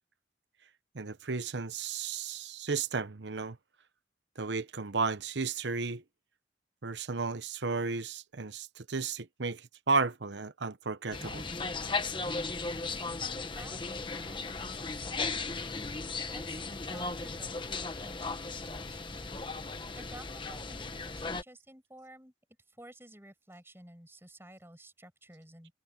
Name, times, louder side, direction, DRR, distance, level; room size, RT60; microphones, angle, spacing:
voice 1, 0.9-3.6 4.4-6.0 6.8-11.4, right 4 dB, 80° right, 1.0 m, -33 dB
sound 1, 11.1-21.4, left 3 dB, 25° left, 1.2 m, -36 dB
voice 2, 13.4-13.8 14.1-22.3 22.7-25.7, right 1 dB, 15° right, 7.9 m, -53 dB
head